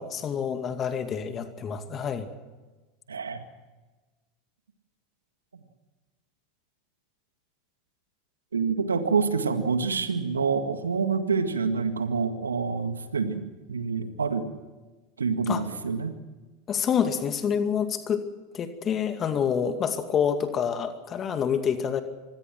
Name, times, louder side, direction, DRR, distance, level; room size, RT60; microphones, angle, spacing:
voice 1, 0.0-2.3 15.5-15.6 16.7-18.2 18.5-22.0, left 7 dB, 35° left, 8 dB, 2.3 m, -27 dB
voice 2, 3.1-3.5 5.5-5.6 8.5-14.5 15.2-16.2, right 5 dB, 85° right, 8 dB, 1.9 m, -27 dB
26.0 x 21.0 x 6.2 m, 1.2 s
hypercardioid pair, 85°, 0 cm